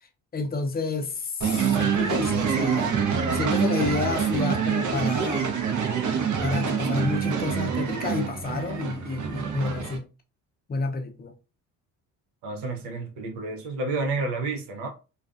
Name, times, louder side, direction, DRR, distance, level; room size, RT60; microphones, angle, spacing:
voice 1, 0.3-3.0 3.3-5.5 6.4-10.1 10.7-11.3, left 3 dB, 25° left, 0.6 m, -30 dB
sound 1, 1.4-10.0, right 6 dB, 45° right, 0.7 m, -26 dB
voice 2, 12.4-14.9, right 3 dB, 70° right, 0.9 m, -30 dB
2.4 x 2.3 x 2.4 m
hypercardioid pair, 60°, 42 cm